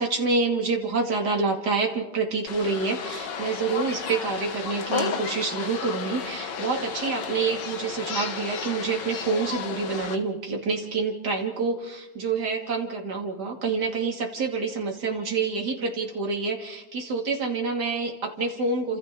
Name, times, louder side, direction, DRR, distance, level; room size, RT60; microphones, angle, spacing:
voice 1, 0.0-19.0, right 4 dB, 65° right, 1 dB, 3.1 m, -27 dB
sound 1, 2.5-10.2, left 6 dB, 75° left, 1.9 m, -33 dB
29.5 x 27.0 x 3.8 m, 0.98 s
omnidirectional pair, 2.0 m